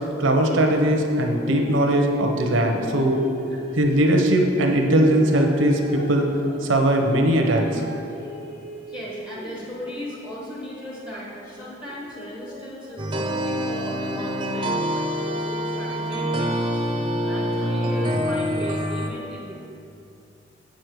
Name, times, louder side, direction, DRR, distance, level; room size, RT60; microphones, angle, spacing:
voice 1, 0.2-3.2 3.8-6.3 6.6-7.8, right 1 dB, 85° right, 2 dB, 0.9 m, -20 dB
sound 1, 1.1-2.0 2.4-4.3 4.9-9.7 10.3-15.1 15.6-18.8, equal, 45° left, 1.9 m, -42 dB
voice 2, 8.9-19.7, left 1 dB, 25° left, -5 dB, 1.0 m, -37 dB
sound 2, 13.0-19.1, equal, 25° right, 0.6 m, -26 dB
7.1 x 6.4 x 4.7 m, 2.7 s
head